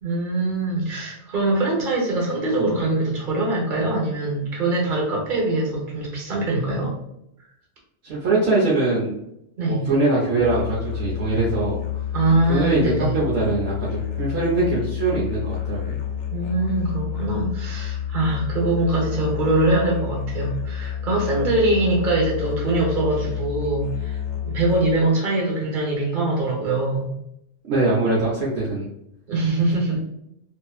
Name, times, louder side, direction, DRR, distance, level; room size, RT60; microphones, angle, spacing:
voice 1, 0.0-6.9 9.6-9.9 12.1-13.1 16.3-27.1 29.3-30.0, right 2 dB, 45° right, -3 dB, 1.1 m, -23 dB
voice 2, 8.0-9.1 9.7-11.8 12.5-16.0 27.6-28.9, right 2 dB, 70° right, -6 dB, 0.9 m, -22 dB
Musical instrument, 10.4-25.1, left 10 dB, 90° left, 0.9 m, -29 dB
2.8 x 2.5 x 2.3 m, 0.79 s
omnidirectional pair, 1.2 m